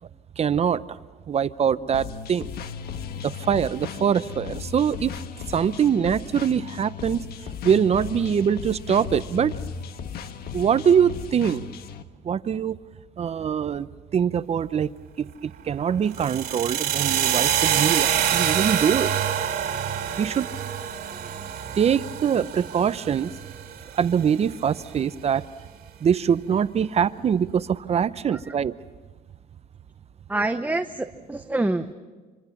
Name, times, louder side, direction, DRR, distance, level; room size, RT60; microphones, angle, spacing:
voice 1, 0.4-0.8 1.3-2.5 3.2-5.2 5.5-9.5 10.5-11.7 12.2-12.8 13.2-14.9 15.2-19.1 20.2-20.5 21.7-23.3 23.9-25.5 26.0-28.8, right 8 dB, 40° right, 15 dB, 0.7 m, -23 dB
sound 1, 1.9-12.0, left 7 dB, 65° left, 1.5 m, -36 dB
sound 2, 16.1-24.2, right 10 dB, 65° right, 3.6 m, -26 dB
voice 2, 30.3-31.9, right 2 dB, 10° right, 8 dB, 0.8 m, -27 dB
27.0 x 25.5 x 7.2 m, 1.4 s
cardioid pair, 110°, 17 cm